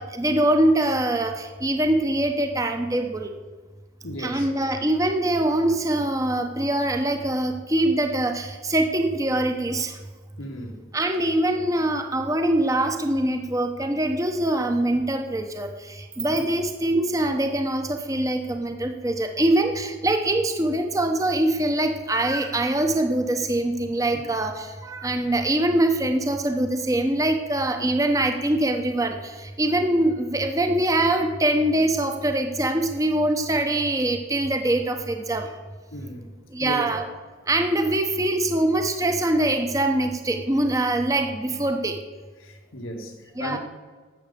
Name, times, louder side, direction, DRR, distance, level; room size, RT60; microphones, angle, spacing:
voice 1, 0.0-3.3 4.2-10.0 10.9-35.5 36.5-37.0 37.5-42.0 43.4-43.6, right 1 dB, 15° right, 5 dB, 0.8 m, -23 dB
voice 2, 4.0-4.5 10.4-10.7 16.3-16.5 35.9-36.3 36.6-36.9 42.4-43.6, equal, 85° left, 2 dB, 1.9 m, -35 dB
12.0 x 7.8 x 6.9 m, 1.5 s
head